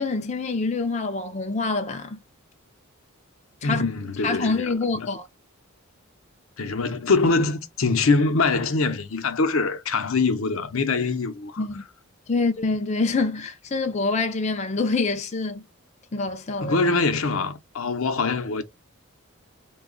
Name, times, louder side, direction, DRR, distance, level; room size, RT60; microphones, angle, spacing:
voice 1, 0.0-2.2 3.6-3.9 4.2-5.3 11.6-11.8 12.3-15.6 16.1-16.8, left 3 dB, 30° left, 0.5 m, -26 dB
voice 2, 3.6-5.1 6.6-11.7 16.6-18.6, left 3 dB, 75° left, 0.7 m, -24 dB
3.9 x 2.3 x 3.7 m
head